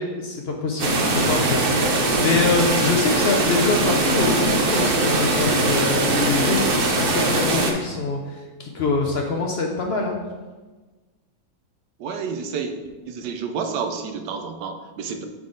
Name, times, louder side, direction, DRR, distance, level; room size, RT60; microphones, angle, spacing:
voice 1, 0.0-10.1, left 4 dB, 60° left, 2 dB, 0.7 m, -25 dB
sound 1, 0.8-7.7, right 2 dB, 50° right, 0.7 m, -21 dB
voice 2, 12.0-12.8 13.1-15.2, right 5 dB, 90° right, 7 dB, 1.3 m, -29 dB
9.1 x 3.8 x 3.9 m, 1.3 s
omnidirectional pair, 1.8 m